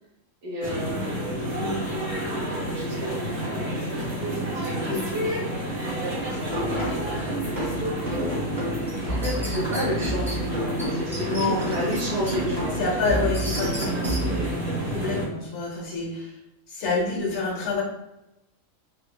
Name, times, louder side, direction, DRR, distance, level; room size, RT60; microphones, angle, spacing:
voice 1, 0.4-1.8 2.5-4.2 4.5-8.7 9.1-12.7 15.0-15.2, equal, 80° right, -7 dB, 1.4 m, -33 dB
sound 1, 0.6-15.3, right 1 dB, 55° right, 1.5 m, -30 dB
sound 2, 6.5-14.5, equal, 35° right, 1.5 m, -31 dB
sound 3, 8.9-10.3 10.8-10.9 11.1-12.3 12.7-14.2, equal, 5° left, 0.5 m, -36 dB
voice 2, 11.2-11.8 12.8-16.4 16.7-17.8, left 3 dB, 60° left, -1 dB, 1.2 m, -28 dB
3.2 x 3.2 x 2.2 m, 0.92 s
omnidirectional pair, 1.4 m